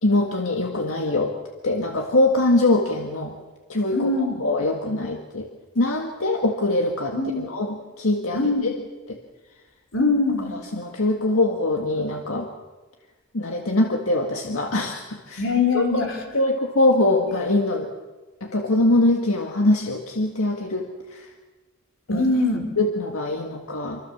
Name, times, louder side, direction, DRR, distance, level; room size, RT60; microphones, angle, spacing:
voice 1, 0.0-1.3 1.6-3.3 3.7-5.5 5.8-8.7 9.1-9.2 10.5-12.5 13.3-15.4 15.7-17.9 18.4-20.8 21.1-21.3 22.1-22.2 22.8-24.0, left 2 dB, 85° left, 2 dB, 1.8 m, -23 dB
voice 2, 3.9-4.4 7.1-7.5 8.3-8.7 9.9-10.5 15.4-16.2 22.1-22.7, left 3 dB, 65° left, 3 dB, 4.5 m, -22 dB
25.0 x 25.0 x 7.2 m, 1.3 s
head